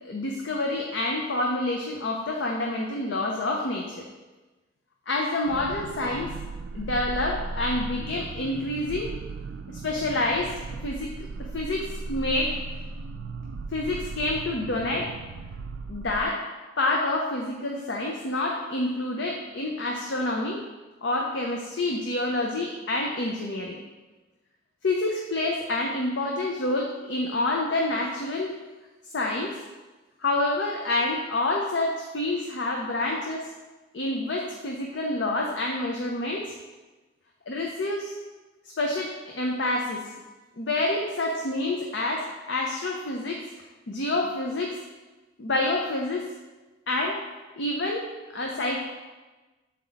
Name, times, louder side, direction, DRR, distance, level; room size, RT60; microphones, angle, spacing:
voice 1, 0.0-4.0 5.1-6.3 6.7-9.1 9.7-10.5 10.8-11.3 11.5-12.6 13.7-15.1 15.9-16.4 16.8-20.6 21.0-23.8 24.8-28.5 29.1-29.5 30.2-33.5 33.9-36.6 37.5-38.1 38.8-40.0 40.6-43.4 43.9-44.8 45.4-46.2 46.9-47.2 47.6-48.1 48.3-48.9, left 2 dB, 65° left, 0 dB, 0.7 m, -28 dB
sound 1, 5.5-16.3, right 3 dB, 85° right, 0.4 m, -37 dB
7.3 x 4.3 x 4.0 m, 1.2 s
head